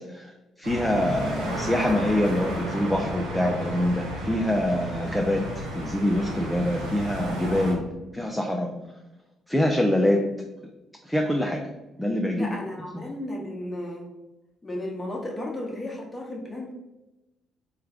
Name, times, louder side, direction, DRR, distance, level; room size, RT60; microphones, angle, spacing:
voice 1, 0.1-7.8 8.1-8.7 9.5-10.2 11.0-11.6 12.0-12.6 12.9-13.1, left 1 dB, 5° left, 2 dB, 0.4 m, -25 dB
sound 1, 0.6-7.7, right 1 dB, 90° right, 0.8 m, -33 dB
voice 2, 12.3-14.1 14.6-16.7, left 1 dB, 20° left, -1 dB, 0.8 m, -34 dB
3.2 x 2.4 x 3.5 m, 1.0 s
hypercardioid pair, 55°, 0 cm